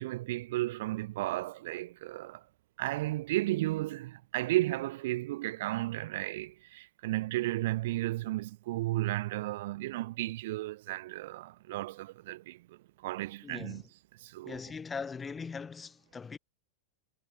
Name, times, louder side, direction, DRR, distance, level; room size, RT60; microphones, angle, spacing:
voice 1, 0.0-2.4 2.8-13.8 14.2-14.6, right 17 dB, 55° right, 0.5 m, -34 dB
voice 2, 13.4-13.8 14.4-16.4, left 5 dB, 15° left, 1.4 m, -40 dB
figure-of-eight pair, 90°, 0 cm